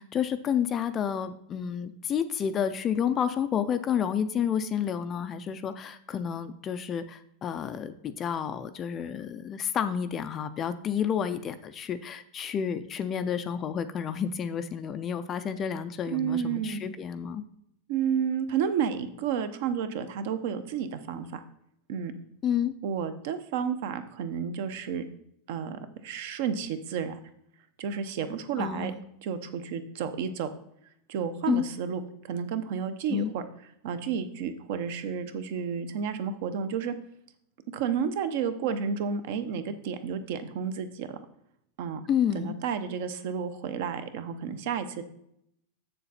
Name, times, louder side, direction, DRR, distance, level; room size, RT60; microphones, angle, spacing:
voice 1, 0.0-17.4 22.4-22.7 28.6-29.0 31.5-31.6 33.1-33.3 42.1-42.5, left 8 dB, 20° left, 11 dB, 0.4 m, -30 dB
voice 2, 16.1-16.8 17.9-21.4 21.9-22.1 22.8-25.0 25.5-27.2 27.8-28.9 29.2-30.5 31.1-33.4 33.8-36.9 37.7-41.1 41.8-42.0 42.3-45.0, right 7 dB, 50° right, 11 dB, 0.8 m, -31 dB
7.5 x 6.9 x 4.1 m, 0.73 s
supercardioid pair, 175°, 0 cm